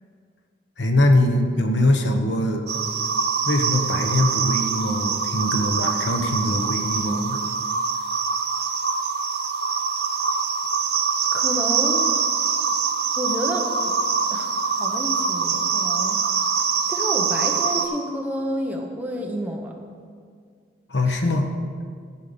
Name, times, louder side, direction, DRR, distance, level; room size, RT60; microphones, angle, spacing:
voice 1, 0.8-2.7 3.4-7.4 20.9-21.6, left 1 dB, 70° left, 4 dB, 1.1 m, -22 dB
sound 1, 2.7-17.9, right 5 dB, 55° right, 0.9 m, -24 dB
voice 2, 11.3-12.2 13.2-14.0 14.3-16.5 16.9-19.7 21.1-21.2, equal, 10° right, 0 dB, 1.0 m, -30 dB
14.0 x 5.7 x 6.9 m, 2.1 s
head